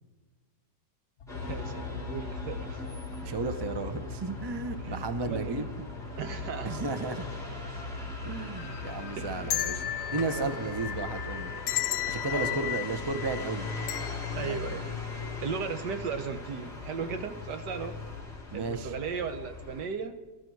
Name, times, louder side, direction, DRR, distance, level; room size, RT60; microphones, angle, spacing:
sound 1, 1.2-11.9, left 2 dB, 50° left, 1.0 m, -42 dB
sound 2, 1.3-19.9, left 3 dB, ahead, 3.8 m, -40 dB
voice 1, 1.4-2.9 4.8-5.8 6.2-6.7 9.2-9.5 10.4-10.5 12.3-12.7 14.4-14.9 15.4-18.0 18.5-20.2, right 6 dB, 70° right, 8 dB, 1.7 m, -36 dB
voice 2, 3.2-5.7 6.6-7.4 8.2-11.5 12.1-13.7 14.4-14.8 18.5-18.9, right 3 dB, 30° right, 9 dB, 0.4 m, -34 dB
sound 3, 8.6-15.7 16.1-16.2 17.1-17.4 17.8-18.0, left 13 dB, 85° left, 1.3 m, -36 dB
18.5 x 13.0 x 4.7 m, 1.3 s
omnidirectional pair, 1.9 m